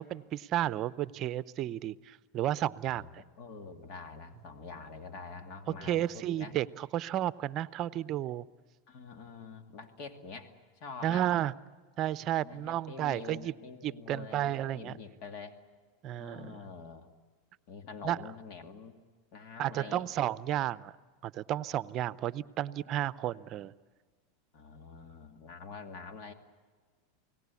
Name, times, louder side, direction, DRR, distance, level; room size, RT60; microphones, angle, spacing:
voice 1, 0.0-3.2 5.7-8.5 11.0-11.5 12.0-13.5 13.8-14.9 16.0-16.6 18.0-18.2 19.6-20.9 21.2-23.7, right 12 dB, 45° right, 17 dB, 0.6 m, -32 dB
voice 2, 2.8-6.5 8.9-11.3 12.4-15.6 16.2-17.1 17.7-19.0 19.3-20.0 24.5-26.3, left 4 dB, 55° left, 6 dB, 2.4 m, -46 dB
28.5 x 18.5 x 8.4 m, 1.5 s
hypercardioid pair, 110°, 0 cm